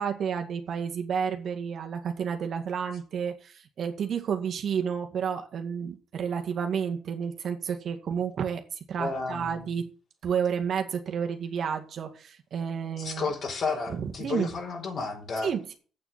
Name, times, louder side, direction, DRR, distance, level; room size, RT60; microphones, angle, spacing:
voice 1, 0.0-9.9 10.2-13.3 13.9-14.5 15.4-15.7, right 7 dB, 60° right, 5 dB, 2.0 m, -31 dB
voice 2, 9.0-9.7 13.0-15.5, left 4 dB, 55° left, 3 dB, 4.4 m, -32 dB
8.6 x 7.1 x 8.6 m, 0.40 s
cardioid pair, 90°, 0 cm